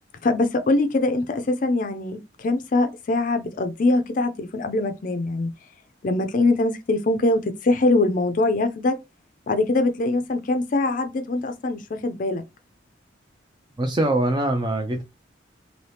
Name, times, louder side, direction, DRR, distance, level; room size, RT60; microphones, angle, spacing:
voice 1, 0.2-5.5 6.0-9.0 9.5-12.4, left 2 dB, 45° left, 0.4 m, -23 dB
voice 2, 13.8-15.0, right 1 dB, 25° right, 0.4 m, -23 dB
2.7 x 2.7 x 3.3 m
head